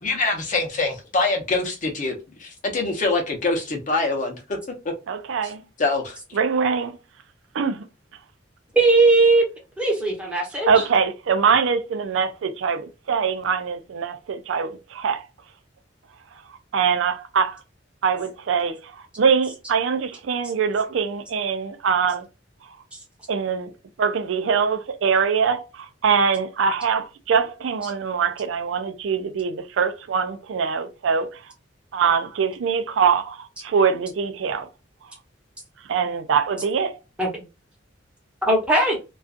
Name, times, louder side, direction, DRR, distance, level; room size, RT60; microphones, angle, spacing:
voice 1, 0.0-4.6 5.8-6.2, left 3 dB, 40° left, 0.8 m, -24 dB
voice 2, 5.1-5.6 6.3-7.0 7.5-7.8 10.7-15.3 16.5-17.6 18.0-22.3 23.3-23.7 24.0-31.4 31.9-34.7 35.9-37.0, right 6 dB, 85° right, 0.4 m, -23 dB
voice 3, 8.7-9.4 9.8-10.7 37.2-37.4 38.4-39.0, right 3 dB, 5° right, 1.0 m, -18 dB
2.5 x 2.3 x 2.4 m
head